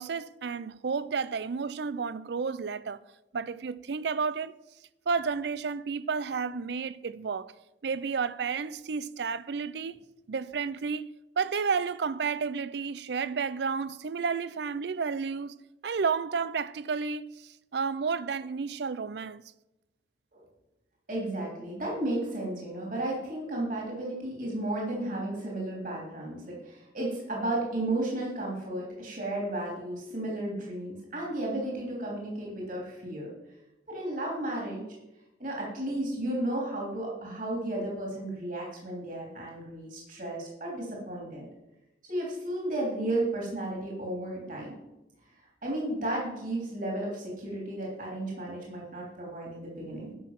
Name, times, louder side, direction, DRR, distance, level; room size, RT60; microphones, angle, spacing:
voice 1, 0.0-3.0 3.3-4.5 5.1-7.5 7.8-10.0 10.3-11.0 11.4-15.5 15.8-19.4, right 5 dB, 65° right, 0.4 m, -31 dB
voice 2, 21.1-33.3 33.9-34.8 35.4-41.5 42.0-44.8 45.6-50.2, right 1 dB, 45° right, 3.1 m, -33 dB
11.0 x 6.4 x 5.8 m
head